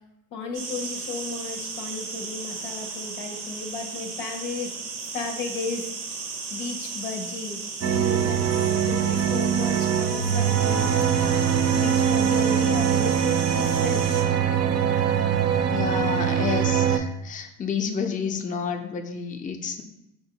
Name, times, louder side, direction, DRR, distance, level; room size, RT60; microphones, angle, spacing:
voice 1, 0.3-4.7 5.1-5.9 6.5-7.6 7.9-8.4 8.8-10.9 11.7-14.0, left 4 dB, 90° left, 4 dB, 0.7 m, -34 dB
sound 1, 0.5-14.2, right 4 dB, 85° right, 0.7 m, -35 dB
sound 2, 7.8-17.0, right 8 dB, 40° right, 0.4 m, -22 dB
voice 2, 15.7-19.8, left 6 dB, 20° left, 5 dB, 0.4 m, -29 dB
4.7 x 2.6 x 2.8 m, 0.88 s
hypercardioid pair, 55°, 43 cm